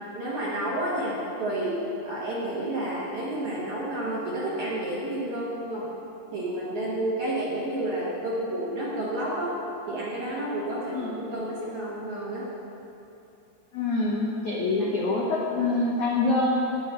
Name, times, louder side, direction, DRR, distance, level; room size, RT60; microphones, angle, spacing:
voice 1, 0.1-1.8 2.0-5.9 6.3-9.6 9.9-12.5, right 1 dB, 55° right, -7 dB, 2.3 m, -30 dB
voice 2, 10.9-11.2 13.7-16.5, left 3 dB, 70° left, -5 dB, 1.8 m, -25 dB
13.5 x 11.0 x 4.5 m, 2.9 s
omnidirectional pair, 5.3 m